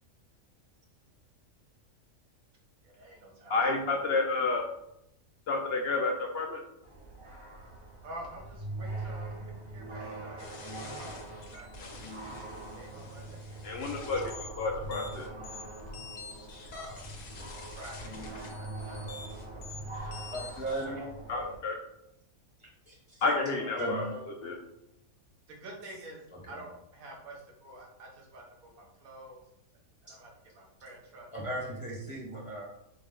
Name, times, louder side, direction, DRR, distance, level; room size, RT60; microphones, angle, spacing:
voice 1, 2.8-3.8 8.0-11.7 12.7-14.0 16.7-17.1 17.8-19.6 23.2-23.8 25.5-26.2 26.5-29.4 30.1-31.3, right 1 dB, 85° right, 0 dB, 1.4 m, -48 dB
voice 2, 3.5-4.7 5.5-6.6 13.6-15.3 21.3-21.8 23.2-24.0 24.4-24.6, left 3 dB, 65° left, 2 dB, 0.6 m, -30 dB
sound 1, 6.8-21.6, right 2 dB, 30° right, 0.6 m, -43 dB
sound 2, 10.4-20.9, left 3 dB, 80° left, 1.1 m, -47 dB
voice 3, 20.3-21.1 22.9-23.0 23.8-24.5 26.3-26.6 31.3-32.6, right 1 dB, 30° left, -5 dB, 0.7 m, -36 dB
5.1 x 2.1 x 3.6 m, 0.81 s
omnidirectional pair, 1.5 m